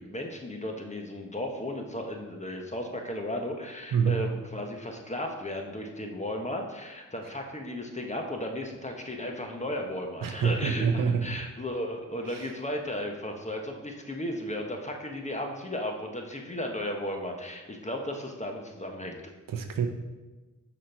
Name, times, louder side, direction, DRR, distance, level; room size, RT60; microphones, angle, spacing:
voice 1, 0.0-19.2, left 1 dB, 20° left, 2 dB, 1.3 m, -35 dB
voice 2, 3.9-4.2 10.2-11.4 12.3-12.5 19.5-19.9, right 6 dB, 75° right, 6 dB, 0.7 m, -27 dB
6.1 x 4.3 x 4.5 m, 1.2 s
supercardioid pair, 40°, 34 cm